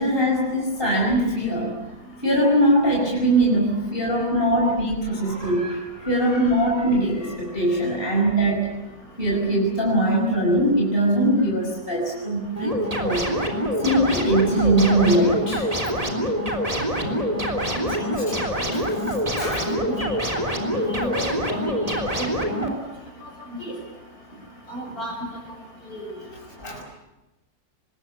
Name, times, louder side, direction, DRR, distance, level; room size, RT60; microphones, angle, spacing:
voice 1, 0.0-1.8 2.2-8.7 9.2-13.3 13.8-15.7 16.8-16.9 17.9-18.4 18.7-18.8 19.4-19.6 26.6-26.8, right 1 dB, 30° left, -1 dB, 5.6 m, -21 dB
sound 1, 12.6-22.7, equal, 20° right, 3.6 m, -25 dB
voice 2, 17.8-18.1 18.6-18.7 19.2-19.3 19.6-20.1 20.7-22.8 23.6-23.7 24.7-25.2 25.9-26.0, equal, 55° left, 1 dB, 7.3 m, -33 dB
25.0 x 21.0 x 8.6 m, 0.97 s
omnidirectional pair, 1.8 m